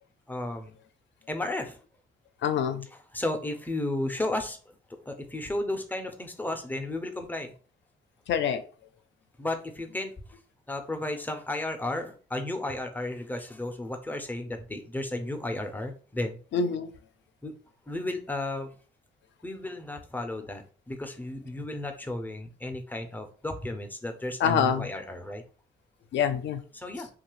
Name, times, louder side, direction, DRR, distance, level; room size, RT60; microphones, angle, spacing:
voice 1, 0.3-0.8 1.3-1.8 3.1-4.6 5.1-7.5 9.4-10.1 10.7-16.4 17.4-17.5 17.9-18.7 19.4-25.4 26.7-27.1, left 1 dB, 10° left, 5 dB, 0.5 m, -33 dB
voice 2, 2.4-2.8 8.3-8.6 16.5-16.9 24.4-24.9 26.1-26.6, left 7 dB, 65° left, 9 dB, 0.5 m, -25 dB
2.7 x 2.3 x 3.0 m, 0.38 s
cardioid pair, 90°, 20 cm